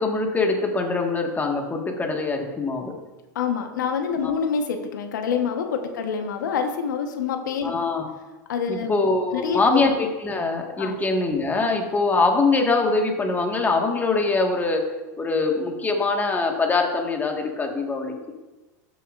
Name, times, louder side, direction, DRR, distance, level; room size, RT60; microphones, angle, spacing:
voice 1, 0.0-2.9 4.2-4.3 7.6-8.0 8.7-14.8 15.2-18.3, left 3 dB, 15° left, 2 dB, 1.6 m, -23 dB
voice 2, 3.3-7.7 8.5-8.9 9.3-9.6 10.8-11.0, left 6 dB, 85° left, 5 dB, 1.1 m, -26 dB
13.0 x 7.0 x 2.5 m, 1.1 s
hypercardioid pair, 105°, 10 cm